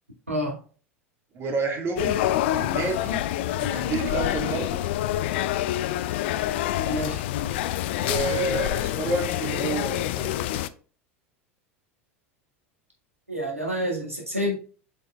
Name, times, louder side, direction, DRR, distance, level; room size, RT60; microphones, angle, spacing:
voice 1, 1.3-3.2 3.6-4.8 7.9-10.3, right 3 dB, 35° right, 2 dB, 1.9 m, -29 dB
sound 1, 2.0-10.7, left 13 dB, 55° left, 0.4 m, -27 dB
voice 2, 6.9-7.2 13.3-14.6, equal, 85° right, -1 dB, 1.8 m, -28 dB
7.6 x 5.4 x 2.4 m, 0.39 s
figure-of-eight pair, 80°, 7 cm